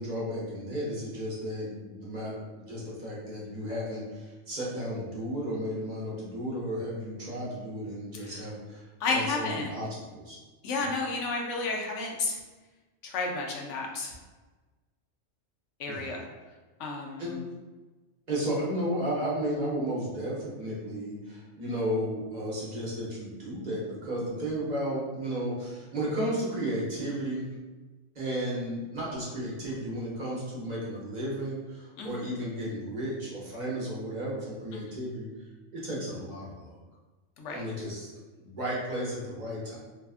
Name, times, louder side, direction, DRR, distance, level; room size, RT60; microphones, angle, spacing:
voice 1, 0.0-9.9 10.1-10.4 15.9-16.1 17.2-17.3 18.3-27.5 28.1-35.3 35.7-36.7 37.5-38.1 38.4-39.8, equal, 40° right, -6 dB, 0.7 m, -33 dB
voice 2, 9.0-9.7 10.6-12.4 13.0-14.1 15.8-16.2 16.8-17.4 32.0-32.3 34.7-35.0 37.4-37.6, left 3 dB, 75° left, 0 dB, 0.9 m, -32 dB
2.7 x 2.3 x 2.4 m, 1.2 s
omnidirectional pair, 1.3 m